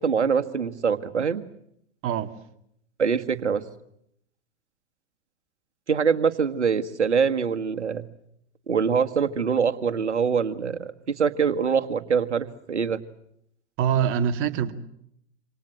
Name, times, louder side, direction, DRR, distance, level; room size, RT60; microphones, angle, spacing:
voice 1, 0.0-1.5 3.0-3.6 5.9-8.1 8.7-13.0, right 6 dB, 80° right, 9 dB, 1.9 m, -24 dB
voice 2, 13.8-14.7, right 8 dB, 40° right, 8 dB, 2.5 m, -24 dB
27.5 x 26.5 x 7.5 m, 0.74 s
figure-of-eight pair, 95°, 34 cm